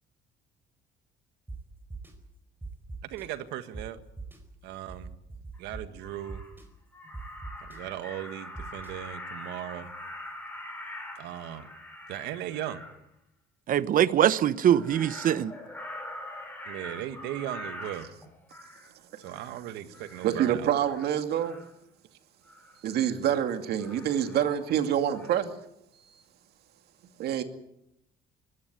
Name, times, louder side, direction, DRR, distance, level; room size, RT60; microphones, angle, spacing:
sound 1, 1.5-1.6 1.9-2.1 2.6-3.2 3.7-3.8 4.2-4.4 4.9-5.8 6.3-6.6 7.1-7.8 8.5-8.9, right 3 dB, 10° right, 4.6 m, -40 dB
voice 1, 3.1-4.0 4.6-5.1 5.6-6.4 7.6-9.9 11.2-11.7 12.1-12.8 16.7-18.1 19.2-20.7, right 12 dB, 90° right, 1.8 m, -37 dB
Crow, 5.5-5.6 6.0-6.6 6.9-13.0 14.5-18.9 19.2-19.6 19.9-20.3 20.7-21.7 22.5-22.8 23.8-24.9 25.1-25.4, left 1 dB, 10° left, 5.8 m, -44 dB
voice 2, 13.7-15.5, right 10 dB, 55° right, 1.0 m, -23 dB
voice 3, 20.2-21.6 22.8-25.5 27.2-27.4, right 10 dB, 70° right, 2.4 m, -26 dB
22.5 x 17.5 x 9.6 m
cardioid pair, 110°, 17 cm